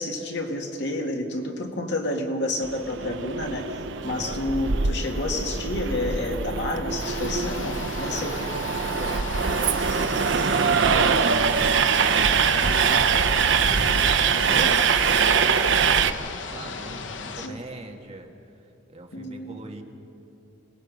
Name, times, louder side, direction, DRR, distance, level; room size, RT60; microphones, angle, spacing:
voice 1, 0.0-3.7 4.0-8.4 12.5-13.3 14.5-14.8 17.4-17.6 19.1-19.6, left 1 dB, 65° left, 2 dB, 2.2 m, -30 dB
Train, 2.6-16.1, right 6 dB, 70° right, 0.7 m, -23 dB
voice 2, 4.0-4.4 8.1-19.8, right 2 dB, 35° right, 2 dB, 1.7 m, -41 dB
sound 1, 7.0-17.5, left 4 dB, 90° left, 1.1 m, -36 dB
27.5 x 19.5 x 5.2 m, 2.7 s
head